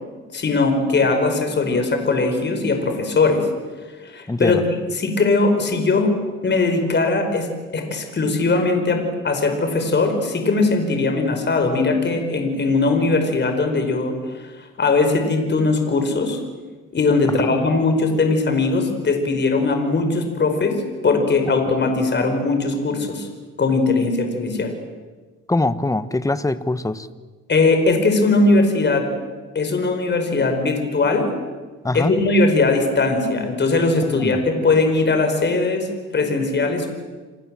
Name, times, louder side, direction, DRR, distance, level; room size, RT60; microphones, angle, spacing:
voice 1, 0.3-3.5 4.0-4.6 4.9-6.1 6.4-7.5 7.7-16.4 16.9-20.8 21.0-23.3 23.6-24.7 27.5-29.1 29.6-31.3 31.9-35.9 36.1-36.9, left 3 dB, 40° left, 5 dB, 5.2 m, -20 dB
voice 2, 4.3-4.6 17.4-17.5 25.5-27.1 31.8-32.1 34.2-34.4, left 2 dB, 10° left, 13 dB, 1.3 m, -22 dB
28.0 x 27.0 x 7.7 m, 1.3 s
cardioid pair, 110°, 29 cm